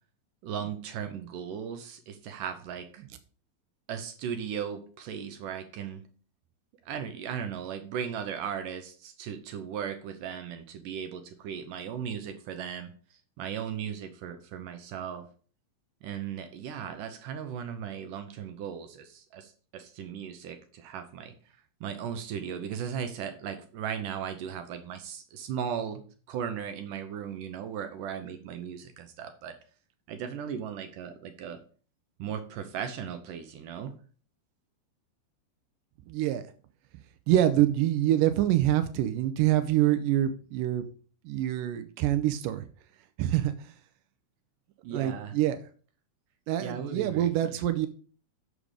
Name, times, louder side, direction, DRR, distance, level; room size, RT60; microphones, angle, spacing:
voice 1, 0.4-3.0 3.9-6.0 6.9-12.9 13.4-15.3 16.0-21.3 21.8-26.0 26.3-29.6 30.1-31.6 32.2-34.0 44.8-45.4 46.6-47.6, right 8 dB, 75° right, 8 dB, 2.0 m, -37 dB
voice 2, 36.1-36.4 37.3-40.9 41.3-42.7 43.2-43.7 44.9-45.6 46.5-47.9, right 12 dB, 90° right, 11 dB, 1.9 m, -25 dB
7.2 x 6.2 x 5.0 m, 0.41 s
omnidirectional pair, 4.5 m